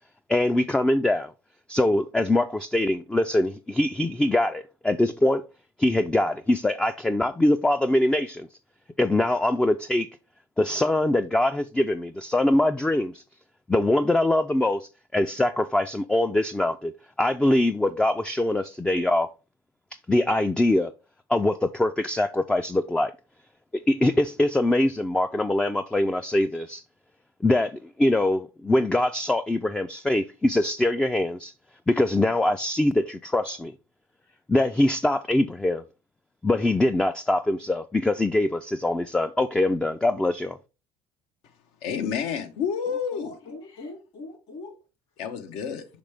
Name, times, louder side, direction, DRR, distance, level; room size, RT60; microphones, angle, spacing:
voice 1, 0.3-1.3 1.7-5.4 5.8-8.5 9.0-10.1 10.6-13.2 13.7-16.9 17.2-19.3 20.1-20.9 21.3-23.1 23.9-26.8 27.4-31.5 31.9-33.7 34.5-35.8 36.4-40.6, left 1 dB, 10° left, 0.3 m, -23 dB
voice 2, 41.8-43.3 45.2-45.8, left 7 dB, 80° left, 0.9 m, -29 dB
voice 3, 42.9-44.8, left 2 dB, 60° left, 2.8 m, -41 dB
5.5 x 5.2 x 3.3 m
cardioid pair, 110°, 10 cm